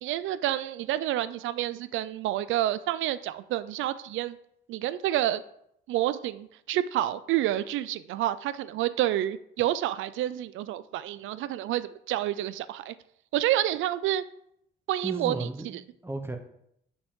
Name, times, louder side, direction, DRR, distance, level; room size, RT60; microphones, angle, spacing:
voice 1, 0.0-4.4 4.7-5.4 5.9-12.9 13.3-14.2 14.9-15.5, right 13 dB, 80° right, 15 dB, 0.4 m, -29 dB
voice 2, 15.0-16.4, right 2 dB, 10° right, 5 dB, 0.8 m, -35 dB
7.1 x 5.4 x 3.7 m, 0.74 s
cardioid pair, 90°, 20 cm